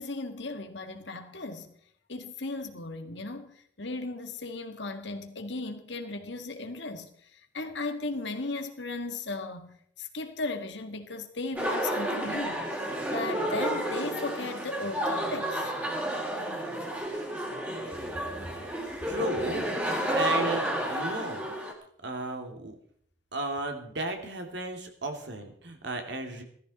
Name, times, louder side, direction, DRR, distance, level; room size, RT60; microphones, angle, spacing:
voice 1, 0.0-1.7 2.1-12.6 13.1-15.7, left 3 dB, 70° left, 1.9 m, -36 dB
sound 1, 11.6-21.7, right 1 dB, 10° right, 2.8 m, -31 dB
voice 2, 19.0-21.4 22.0-22.7 23.3-26.4, right 2 dB, 65° right, 2.7 m, -34 dB
16.5 x 14.0 x 4.2 m
head